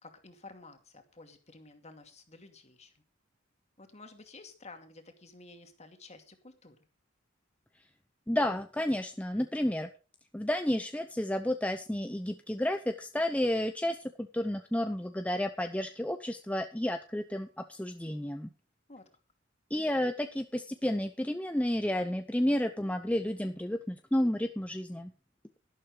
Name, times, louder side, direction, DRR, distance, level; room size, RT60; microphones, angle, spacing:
voice 1, 0.0-3.0 3.8-6.8 18.9-19.1, left 3 dB, 35° left, 6 dB, 2.4 m, -52 dB
voice 2, 8.3-9.9 10.3-18.5 19.7-25.1, left 1 dB, 5° left, 7 dB, 0.7 m, -31 dB
12.0 x 12.0 x 4.8 m, 0.34 s
head